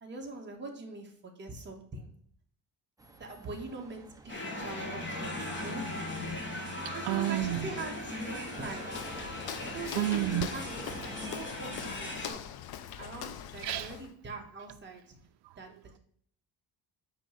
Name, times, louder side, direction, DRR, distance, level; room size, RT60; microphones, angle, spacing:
voice 1, 0.0-2.1 3.2-5.9 6.2-6.4 6.9-8.9 9.7-12.4 13.0-15.2 15.6-16.0, right 3 dB, 25° right, 1.4 m, -43 dB
sound 1, 3.0-11.3, right 2 dB, 10° right, 0.5 m, -51 dB
sound 2, 4.3-12.3, left 1 dB, 25° left, 1.5 m, -38 dB
voice 2, 6.4-7.7 9.4-10.5 12.9-13.0 13.6-14.0 15.4-15.6, right 15 dB, 70° right, 0.5 m, -33 dB
Walk footsteps, 8.9-14.1, left 10 dB, 60° left, 0.6 m, -42 dB
8.9 x 3.1 x 6.3 m
cardioid pair, 175°, 42 cm